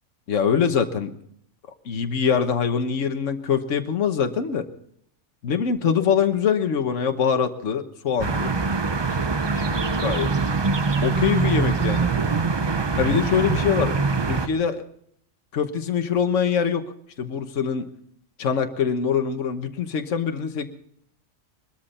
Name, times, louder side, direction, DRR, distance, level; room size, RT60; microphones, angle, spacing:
voice 1, 0.3-1.2 1.8-4.6 5.4-8.5 9.5-10.3 11.0-12.1 13.0-13.9 14.3-14.8 15.5-16.8 17.2-17.9 18.4-20.7, left 7 dB, 70° left, 7 dB, 1.5 m, -23 dB
sound 1, 8.2-14.5, right 4 dB, 30° right, 0.5 m, -23 dB
22.0 x 13.0 x 4.2 m, 0.66 s
omnidirectional pair, 1.4 m